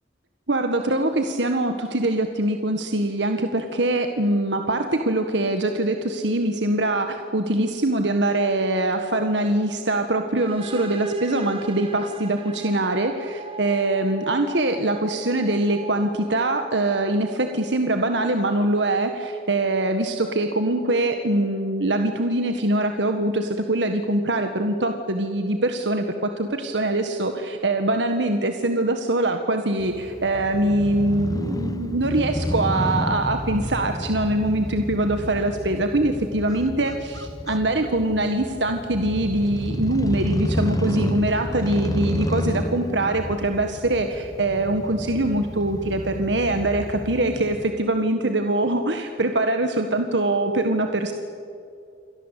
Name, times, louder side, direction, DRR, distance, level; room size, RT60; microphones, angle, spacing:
voice 1, 0.5-51.1, right 1 dB, 75° right, 6 dB, 1.7 m, -23 dB
sound 1, 10.4-18.0, right 1 dB, 30° right, 2.1 m, -39 dB
Crow / Motorcycle, 29.8-47.7, left 1 dB, 20° left, 0.9 m, -30 dB
29.0 x 23.5 x 8.4 m, 2.5 s
head